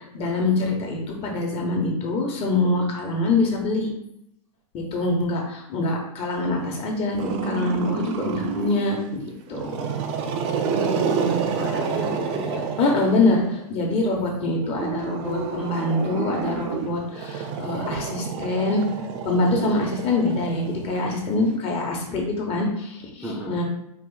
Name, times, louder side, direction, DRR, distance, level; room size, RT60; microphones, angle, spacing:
voice 1, 0.1-3.9 4.7-9.9 12.8-18.8 19.2-23.6, left 2 dB, 30° left, 0 dB, 1.2 m, -24 dB
Growling, 7.2-8.9 9.5-13.6 14.6-21.1, right 6 dB, 50° right, 0.6 m, -29 dB
voice 2, 10.6-12.7 23.2-23.6, equal, 5° right, -5 dB, 0.7 m, -33 dB
4.7 x 2.6 x 4.0 m, 0.78 s
hypercardioid pair, 130°, 19 cm